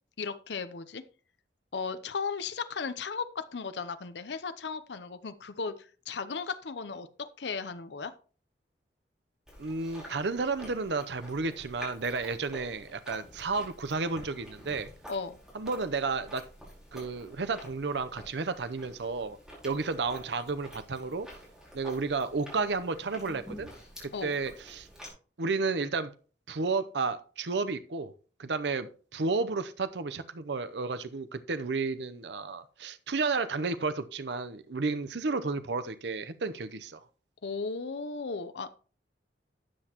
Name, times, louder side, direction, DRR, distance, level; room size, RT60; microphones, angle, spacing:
voice 1, 0.2-1.0 1.7-8.1 15.1-15.4 24.1-24.4 37.4-38.7, left 5 dB, 75° left, 0.7 m, -36 dB
Chewing mastication, 9.5-25.1, equal, 5° right, 5.1 m, -49 dB
voice 2, 9.6-14.9 15.5-16.4 16.9-19.4 19.6-21.3 21.7-23.7 24.0-24.9 25.4-26.1 26.5-28.1 28.4-37.0, right 4 dB, 75° right, 0.7 m, -32 dB
12.5 x 7.9 x 2.9 m
head